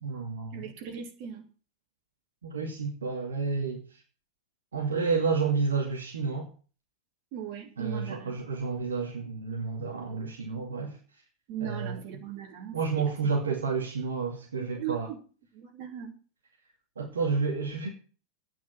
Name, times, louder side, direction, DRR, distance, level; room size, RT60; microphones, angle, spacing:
voice 1, 0.0-0.6 2.4-4.0 4.7-6.5 7.8-11.0 11.6-12.0 12.7-15.1 17.0-17.9, right 4 dB, 70° right, 2.3 m, -30 dB
voice 2, 0.5-1.4 7.3-8.4 11.5-13.3 14.6-15.2 15.5-16.1, right 9 dB, 45° right, 3.4 m, -39 dB
9.4 x 7.5 x 9.2 m
figure-of-eight pair, 90°, 0 cm